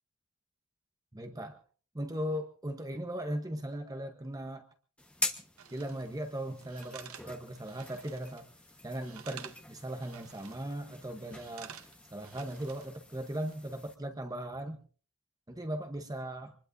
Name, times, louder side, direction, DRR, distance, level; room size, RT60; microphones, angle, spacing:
voice 1, 1.1-1.6 1.9-4.7 5.7-8.5 8.8-11.8 12.1-14.8 15.5-16.6, right 1 dB, 15° right, 6 dB, 1.0 m, -38 dB
sound 1, 5.0-14.0, left 2 dB, 5° left, 1.2 m, -44 dB
sound 2, 5.6-6.1 6.6-8.5 8.7-9.7 10.0-10.8 11.2-13.0 13.3-13.6, right 9 dB, 70° right, 0.9 m, -51 dB
25.5 x 20.5 x 2.7 m, 0.41 s
head